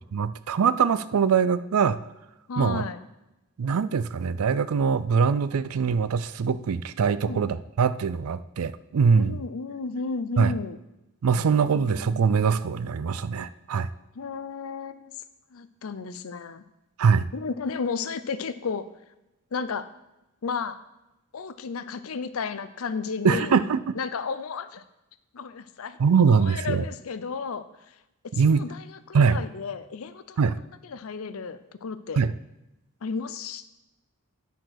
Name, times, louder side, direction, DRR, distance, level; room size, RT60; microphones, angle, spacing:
voice 1, 0.1-2.0 2.6-2.9 3.6-9.4 10.4-10.5 11.2-13.9 17.0-17.3 23.2-23.9 26.0-26.8 28.3-28.6 29.1-29.4 30.4-30.6 32.2-32.3, right 6 dB, 90° right, 15 dB, 0.4 m, -22 dB
voice 2, 2.5-3.0 7.2-7.5 9.2-10.8 11.6-12.6 14.2-15.1 15.5-16.6 17.3-18.9 19.5-19.9 20.4-20.8 21.3-23.5 24.0-24.8 25.3-26.0 26.3-27.9 28.4-30.4 30.8-32.2 33.0-33.7, left 5 dB, 75° left, 12 dB, 0.5 m, -33 dB
10.0 x 4.5 x 5.9 m, 0.96 s
head